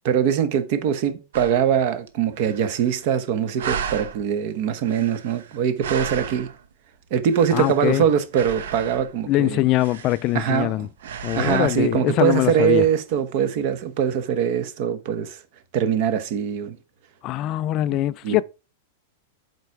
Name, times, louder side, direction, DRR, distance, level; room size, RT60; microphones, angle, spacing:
voice 1, 0.0-6.5 7.1-9.6 10.3-10.9 11.3-15.4 15.7-16.8 18.2-18.4, right 8 dB, 45° right, 1.1 m, -22 dB
sound 1, 1.3-1.7 2.1-2.2 2.3-3.2 3.6-4.2 4.8-6.7 7.1-8.0 8.3-9.2 9.7-10.7 11.0-11.8, right 7 dB, 80° right, 1.0 m, -34 dB
voice 2, 7.5-8.1 9.3-10.9 11.2-12.8 17.2-18.4, left 15 dB, 30° left, 0.3 m, -22 dB
8.0 x 4.6 x 4.7 m
supercardioid pair, 165°, 0 cm